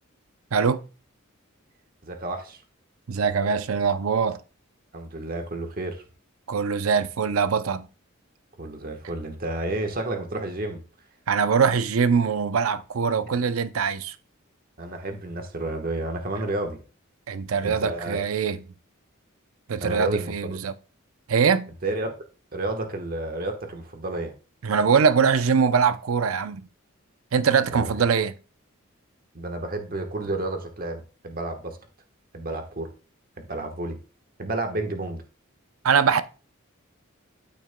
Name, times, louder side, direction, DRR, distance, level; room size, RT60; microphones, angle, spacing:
voice 1, 0.5-0.8 3.1-4.4 6.5-7.9 11.3-14.1 17.3-18.6 19.7-20.7 21.3-21.7 24.6-26.7 27.3-28.3 35.8-36.2, right 6 dB, 85° right, 0.5 m, -22 dB
voice 2, 2.0-2.6 4.9-6.0 8.6-10.8 14.8-16.8 17.6-18.2 19.8-20.6 21.8-22.2 22.5-24.3 27.7-27.9 29.3-31.8 32.3-32.9 33.4-34.0 34.4-35.2, right 2 dB, 45° right, 1.2 m, -31 dB
12.5 x 6.1 x 2.2 m
head